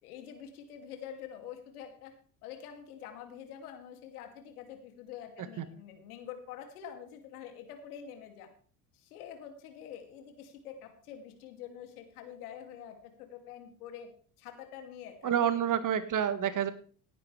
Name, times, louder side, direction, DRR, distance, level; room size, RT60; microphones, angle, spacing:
voice 1, 0.0-2.1 2.4-8.5 8.9-14.1 14.4-15.6, left 9 dB, 80° left, 5 dB, 2.6 m, -46 dB
voice 2, 15.2-16.7, right 9 dB, 45° right, 12 dB, 1.7 m, -28 dB
17.5 x 10.0 x 3.3 m, 0.43 s
hypercardioid pair, 65°, 44 cm